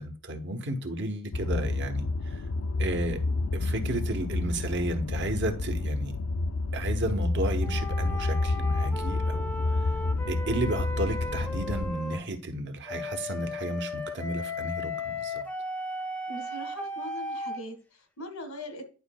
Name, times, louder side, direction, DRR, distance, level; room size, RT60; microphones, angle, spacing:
voice 1, 0.0-2.4 2.8-3.2 3.5-6.1 6.7-9.5 10.3-15.4, right 1 dB, 55° right, 1.0 m, -33 dB
sound 1, 1.3-11.9, left 2 dB, 65° left, 0.5 m, -29 dB
sound 2, 7.6-12.2 12.9-17.6, left 2 dB, 5° left, 0.6 m, -36 dB
voice 2, 16.3-18.8, equal, 90° left, 1.6 m, -41 dB
11.0 x 4.9 x 2.2 m
head